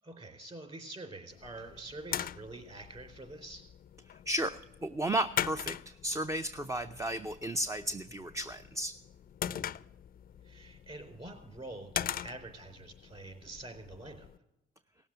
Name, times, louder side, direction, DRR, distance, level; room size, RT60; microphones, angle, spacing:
voice 1, 0.0-3.7 9.5-9.8 10.4-14.3, right 2 dB, 30° right, 7 dB, 4.0 m, -46 dB
sound 1, 1.3-14.4, left 10 dB, 45° left, 0.4 m, -42 dB
voice 2, 4.1-9.0, right 1 dB, 15° right, 9 dB, 0.5 m, -34 dB
18.0 x 7.2 x 7.9 m, 0.89 s
cardioid pair, 90°, 20 cm